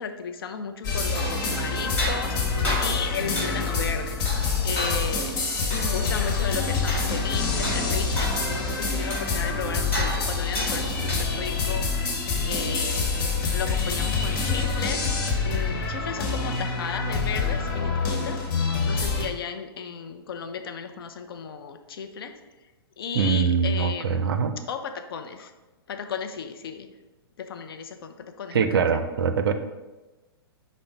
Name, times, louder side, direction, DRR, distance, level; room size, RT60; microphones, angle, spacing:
voice 1, 0.0-4.2 4.6-5.3 5.7-13.1 13.5-15.1 15.4-18.4 18.8-22.3 23.0-24.3 24.7-25.5 25.9-26.9 27.4-28.8, left 6 dB, 65° left, 7 dB, 0.5 m, -34 dB
sound 1, 0.8-19.2, left 4 dB, 50° left, 1.1 m, -26 dB
sound 2, 1.1-11.6, equal, 15° left, 1.3 m, -34 dB
voice 2, 23.1-24.5 28.5-29.5, right 6 dB, 65° right, 9 dB, 0.4 m, -23 dB
5.4 x 2.1 x 3.9 m, 1.1 s
figure-of-eight pair, 115°, 13 cm